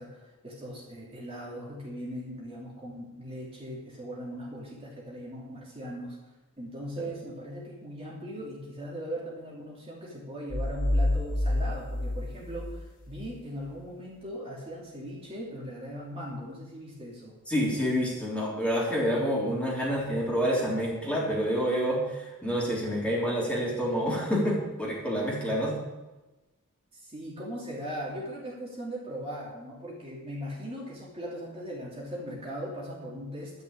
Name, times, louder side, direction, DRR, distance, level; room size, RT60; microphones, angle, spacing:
voice 1, 0.0-6.2 6.6-17.4 26.9-33.6, equal, 25° right, -5 dB, 3.0 m, -39 dB
sound 1, 10.5-13.3, left 1 dB, 40° left, 1.3 m, -29 dB
voice 2, 17.5-25.8, equal, 5° left, -6 dB, 3.6 m, -28 dB
12.0 x 6.8 x 8.6 m, 1.1 s
head